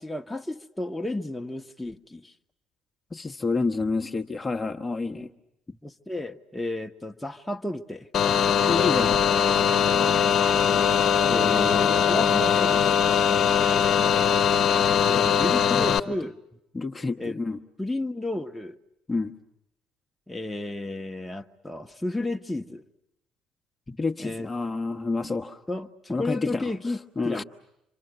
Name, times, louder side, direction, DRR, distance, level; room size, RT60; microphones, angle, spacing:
voice 1, 0.0-2.3 5.1-5.3 5.8-8.1 11.3-13.0 15.0-16.4 17.2-17.4 17.8-18.8 20.3-22.8 24.2-24.5 25.7-27.4, left 1 dB, 5° left, 4 dB, 1.3 m, -32 dB
voice 2, 3.1-5.3 8.7-9.2 15.7-16.0 16.7-17.6 19.1-19.3 23.9-25.6 26.1-26.7 27.2-27.4, left 3 dB, 20° left, 4 dB, 1.3 m, -28 dB
sound 1, 8.1-16.0, left 8 dB, 45° left, 1.2 m, -21 dB
28.5 x 25.5 x 8.1 m, 0.83 s
figure-of-eight pair, 50°, 0 cm